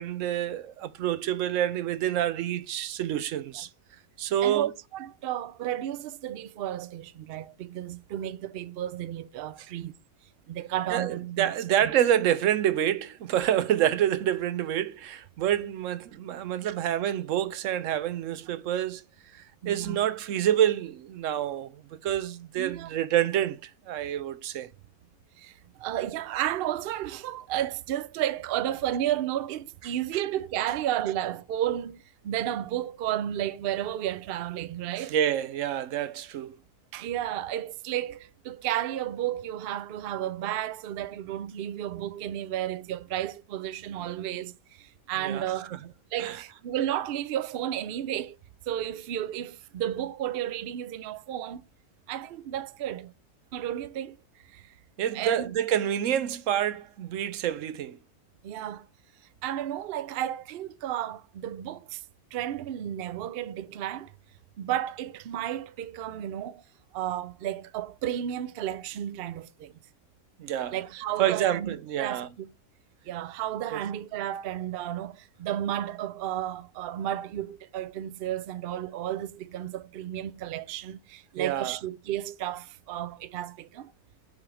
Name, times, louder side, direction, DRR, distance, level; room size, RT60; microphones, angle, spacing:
voice 1, 0.0-3.7 4.2-4.7 10.9-19.0 19.3-21.8 22.0-24.7 35.0-36.6 45.2-45.4 45.7-45.8 46.2-46.4 55.0-58.0 70.4-70.8 71.2-72.3 73.7-73.8 81.4-81.8, right 11 dB, 70° right, 0.9 m, -27 dB
voice 2, 4.4-9.9 10.5-11.5 11.8-11.9 16.6-16.7 19.6-20.0 22.6-22.9 25.4-25.5 25.8-35.1 36.9-44.5 44.8-45.7 46.1-48.4 48.7-51.6 52.1-53.1 53.5-54.2 54.5-54.6 55.1-55.5 58.4-58.9 59.4-62.0 62.3-64.1 64.6-66.6 66.9-69.7 70.7-72.5 73.1-83.9, right 11 dB, 90° right, 0.5 m, -32 dB
7.1 x 3.4 x 4.8 m
omnidirectional pair, 1.6 m